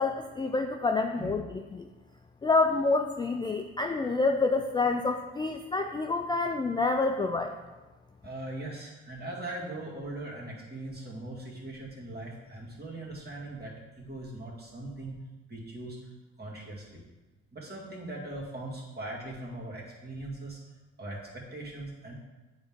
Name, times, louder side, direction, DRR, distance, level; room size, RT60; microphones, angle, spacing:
voice 1, 0.0-1.9 2.4-7.5, left 3 dB, 15° left, 4 dB, 0.3 m, -28 dB
voice 2, 8.2-15.2 15.5-16.0 16.4-17.0 17.5-20.6 21.0-22.1, right 2 dB, 35° right, -4 dB, 2.1 m, -40 dB
8.8 x 4.0 x 3.6 m, 1.2 s
cardioid pair, 90°, 30 cm